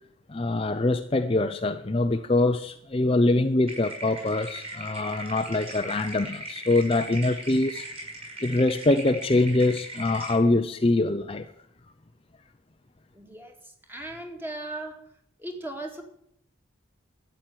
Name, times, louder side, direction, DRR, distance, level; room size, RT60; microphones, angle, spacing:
voice 1, 0.3-7.9 8.4-11.5, left 2 dB, 25° left, 0.6 m, -24 dB
sound 1, 3.7-10.4, right 1 dB, 30° right, 6.2 m, -39 dB
voice 2, 13.1-15.0 15.4-16.0, right 1 dB, 10° right, 2.2 m, -37 dB
13.5 x 9.1 x 9.9 m
head